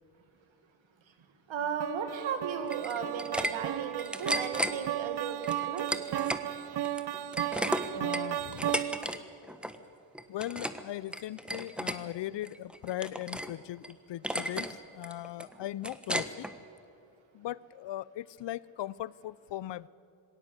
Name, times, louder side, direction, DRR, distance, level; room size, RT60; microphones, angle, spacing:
voice 1, 1.5-5.9, right 7 dB, 75° right, 8 dB, 2.0 m, -35 dB
sound 1, 1.8-9.2, right 12 dB, 60° right, 0.8 m, -35 dB
sound 2, 2.7-3.5 3.8-4.7 5.4-6.4 6.8-9.2 9.4-9.8 10.1-10.8 11.1-12.0 12.4-13.5 13.8-13.9 14.2-14.7 15.0-16.5, equal, ahead, 1.4 m, -34 dB
voice 2, 7.9-8.8 10.3-16.5 17.3-19.9, left 14 dB, 65° left, 22 dB, 0.6 m, -39 dB
19.5 x 17.0 x 8.0 m, 2.7 s
supercardioid pair, 45°, 46 cm